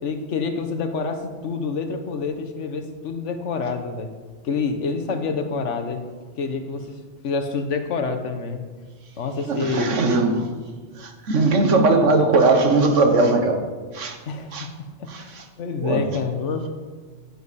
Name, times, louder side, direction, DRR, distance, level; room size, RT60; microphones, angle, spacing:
voice 1, 0.0-4.1 4.4-6.0 6.4-8.6 9.2-10.0 12.0-12.1 14.3-14.5 15.0-16.7, left 4 dB, 80° left, 7 dB, 1.3 m, -27 dB
voice 2, 9.5-10.5 11.0-13.6 13.9-14.2 14.5-14.7 15.1-15.2 15.8-16.0, right 3 dB, 85° right, 5 dB, 1.5 m, -19 dB
9.9 x 9.8 x 4.2 m, 1.4 s
omnidirectional pair, 1.2 m